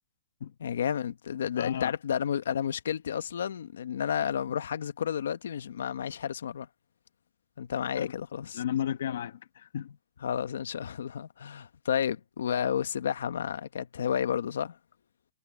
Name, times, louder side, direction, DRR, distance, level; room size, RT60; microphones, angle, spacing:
voice 1, 0.6-6.7 7.6-8.6 10.2-14.8, left 8 dB, 80° left, 1.2 m, -31 dB
voice 2, 1.6-1.9 7.9-8.1 8.5-10.0, left 10 dB, 65° left, 1.4 m, -33 dB
hypercardioid pair, 175°, 0 cm